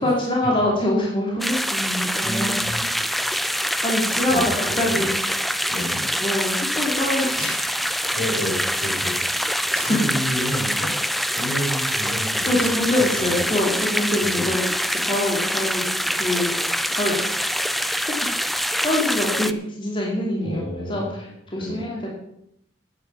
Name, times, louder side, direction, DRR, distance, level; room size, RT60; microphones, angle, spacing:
voice 1, 0.0-2.6 3.8-5.1 6.2-7.8 9.7-10.0 12.4-15.8 16.1-16.5 16.9-21.3 21.5-22.1, left 1 dB, 25° left, -3 dB, 2.8 m, -25 dB
sound 1, 1.4-19.5, equal, ahead, 0.4 m, -25 dB
voice 2, 2.2-2.8 4.3-5.0 5.7-6.0 8.1-9.2 9.9-12.6 13.0-13.3 14.2-14.5 20.4-21.1 21.6-21.9, equal, 70° left, -1 dB, 5.4 m, -30 dB
9.7 x 9.6 x 6.9 m, 0.76 s
head